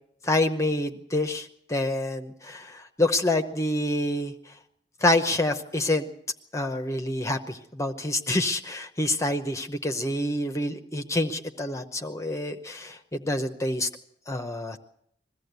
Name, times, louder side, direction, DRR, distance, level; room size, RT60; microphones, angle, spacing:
voice 1, 0.2-4.3 5.0-6.1 6.5-13.9 14.3-14.8, left 1 dB, 15° left, 6 dB, 0.8 m, -27 dB
21.5 x 15.0 x 8.0 m, 0.74 s
head